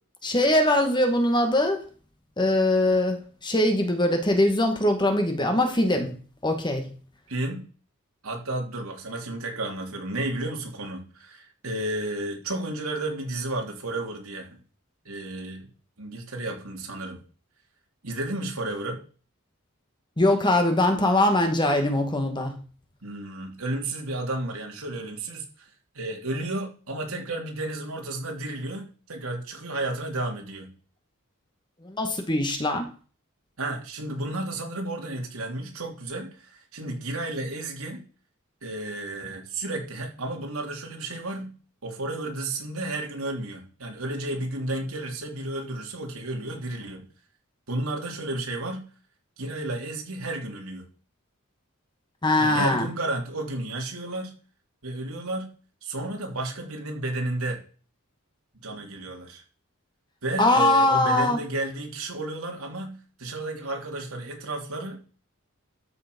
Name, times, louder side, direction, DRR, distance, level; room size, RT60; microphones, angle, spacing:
voice 1, 0.2-1.8 2.4-6.2 6.4-6.9 20.2-22.6 31.8-32.9 52.2-52.9 60.4-61.4, left 1 dB, 20° left, 1.9 m, -22 dB
voice 2, 7.3-7.6 8.2-14.6 15.0-15.7 16.0-17.2 18.0-19.0 23.0-25.7 25.9-30.7 33.6-38.0 38.6-41.5 41.8-47.1 47.7-48.8 49.4-50.8 52.4-54.3 54.8-55.5 55.8-57.6 58.6-59.4 60.2-65.1, right 2 dB, 75° right, 3.2 m, -32 dB
13.0 x 7.0 x 5.4 m
head